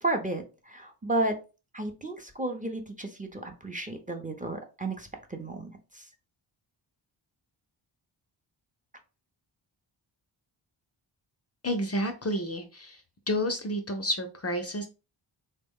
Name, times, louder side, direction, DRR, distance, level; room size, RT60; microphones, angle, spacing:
voice 1, 0.0-1.3 1.7-5.7 5.9-6.1, right 2 dB, 15° right, 3 dB, 0.6 m, -32 dB
voice 2, 11.6-13.0 13.3-14.9, equal, 30° left, 6 dB, 0.5 m, -30 dB
3.4 x 2.2 x 3.5 m, 0.31 s
cardioid pair, 65°, 49 cm